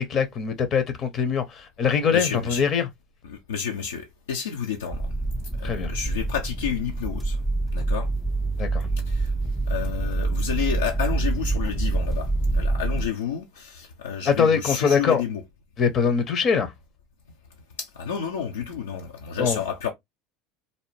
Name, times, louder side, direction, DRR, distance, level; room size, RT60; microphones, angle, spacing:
voice 1, 0.0-2.9 5.6-5.9 8.6-8.9 14.3-15.2 15.8-16.7 19.4-19.6, left 6 dB, 45° left, 0.6 m, -23 dB
voice 2, 2.1-2.7 3.2-5.1 5.6-7.4 7.7-8.1 9.1-9.3 9.7-15.4 17.8-19.9, left 7 dB, 80° left, 0.5 m, -30 dB
sound 1, 4.9-13.1, right 2 dB, ahead, 0.3 m, -26 dB
2.6 x 2.0 x 3.1 m
hypercardioid pair, 80°, 0 cm